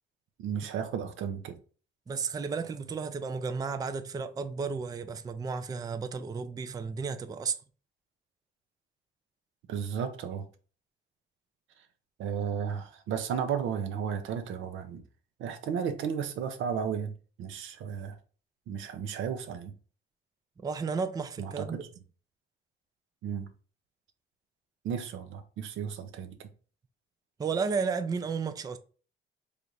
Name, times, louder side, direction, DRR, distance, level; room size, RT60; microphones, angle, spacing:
voice 1, 0.4-1.6 9.7-10.4 12.2-15.0 15.4-18.2 18.7-19.7 21.4-21.9 23.2-23.5 24.8-26.4, right 7 dB, 85° right, 0.6 m, -34 dB
voice 2, 2.1-7.6 20.6-21.9 27.4-28.8, right 5 dB, 20° right, 0.3 m, -33 dB
3.3 x 2.4 x 4.0 m
cardioid pair, 90°, 20 cm